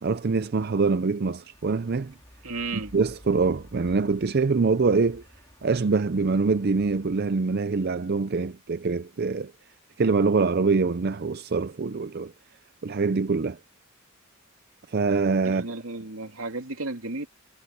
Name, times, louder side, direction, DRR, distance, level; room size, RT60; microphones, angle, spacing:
voice 1, 0.0-2.1 2.9-5.2 5.6-9.5 10.0-12.3 12.8-13.6 14.9-15.7, right 4 dB, 50° right, 0.5 m, -24 dB
sound 1, 1.5-7.3, equal, 20° left, 3.3 m, -53 dB
voice 2, 2.4-2.9 15.4-17.3, right 3 dB, 85° right, 2.9 m, -33 dB
head